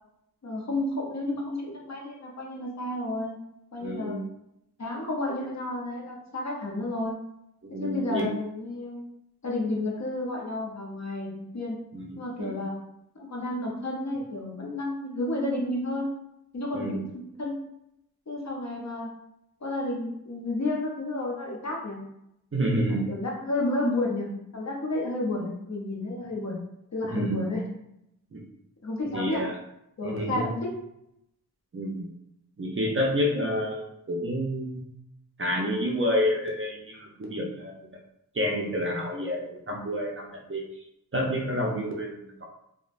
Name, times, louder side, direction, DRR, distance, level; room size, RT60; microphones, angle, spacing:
voice 1, 0.4-3.4 3.7-4.2 4.8-7.2 7.8-9.0 9.4-11.8 12.2-12.8 13.1-16.1 16.5-17.6 18.3-19.1 19.6-22.0 22.9-26.6 26.9-27.6 28.8-29.4 30.0-30.7, left 2 dB, 45° left, -1 dB, 0.7 m, -31 dB
voice 2, 3.8-4.2 7.7-8.3 11.9-12.6 16.7-17.0 22.5-23.0 27.1-27.4 28.3-28.4 29.1-29.5 30.0-30.4 31.7-32.1 32.6-33.8 34.1-34.8 35.4-37.7 38.3-40.6 41.1-42.4, equal, 35° right, -1 dB, 0.5 m, -29 dB
3.0 x 2.0 x 2.5 m, 0.81 s
wide cardioid pair, 60°, 38 cm